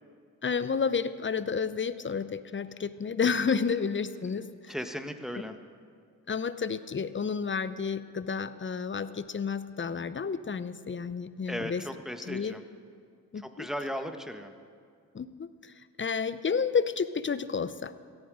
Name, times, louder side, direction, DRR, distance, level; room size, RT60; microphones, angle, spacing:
voice 1, 0.4-4.7 6.3-11.8 12.3-12.5 13.3-13.7 15.1-15.7 16.0-17.9, left 6 dB, 25° left, 14 dB, 0.8 m, -31 dB
voice 2, 4.7-5.6 11.5-12.6 13.3-14.5, equal, ahead, 7 dB, 1.3 m, -36 dB
17.0 x 15.0 x 5.0 m, 2.1 s
hypercardioid pair, 50°, 45 cm